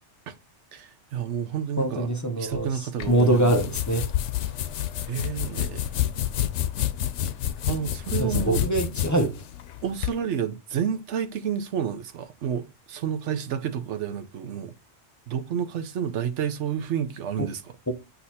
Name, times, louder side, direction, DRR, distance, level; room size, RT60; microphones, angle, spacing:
voice 1, 0.7-2.1 2.4-3.5 5.1-5.8 7.7-8.7 9.8-14.8 15.3-17.8, right 8 dB, 90° right, 1.1 m, -30 dB
voice 2, 1.8-2.7 3.1-4.1 8.2-9.4 17.9-18.0, right 1 dB, 20° left, 0.6 m, -23 dB
sound 1, 3.0-10.2, left 11 dB, 90° left, 0.9 m, -29 dB
8.1 x 2.9 x 4.1 m
omnidirectional pair, 1.2 m